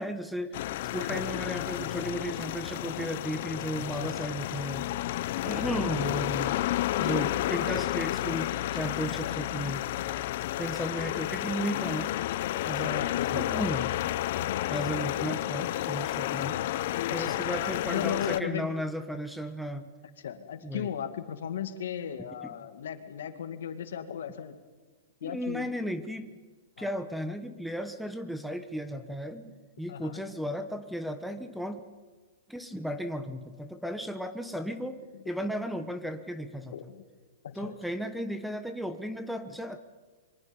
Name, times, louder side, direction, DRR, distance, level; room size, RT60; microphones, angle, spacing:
voice 1, 0.0-4.9 5.4-6.6 7.0-9.8 10.6-12.1 12.6-13.9 14.7-16.6 17.1-19.9 20.6-20.9 25.2-26.3 26.8-29.5 29.8-31.8 32.5-35.0 35.2-36.7 37.5-39.8, equal, ahead, 10 dB, 1.1 m, -35 dB
sound 1, 0.5-18.4, left 14 dB, 55° left, 0.7 m, -31 dB
voice 2, 12.8-13.6 14.8-15.4 16.4-16.7 17.1-17.5 17.8-18.7 20.2-24.5 25.2-25.7 26.8-26.9 29.9-30.2 36.7-37.0 37.4-37.7, left 9 dB, 80° left, 8 dB, 2.2 m, -36 dB
26.5 x 23.5 x 5.4 m, 1.3 s
hypercardioid pair, 155°, 0 cm